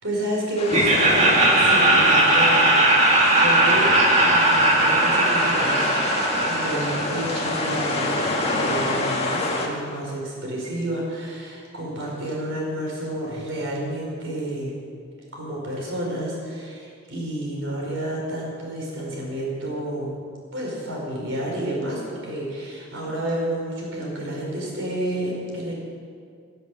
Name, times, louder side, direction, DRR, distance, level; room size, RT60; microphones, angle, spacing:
voice 1, 0.0-2.5 3.4-14.8 15.3-20.2 20.5-25.7, right 1 dB, 65° right, -3 dB, 5.1 m, -30 dB
sound 1, 0.6-9.7, left 2 dB, 30° left, 1.9 m, -27 dB
Laughter, 0.7-7.6, right 1 dB, 35° right, 2.4 m, -19 dB
18.5 x 7.9 x 7.9 m, 2.3 s
head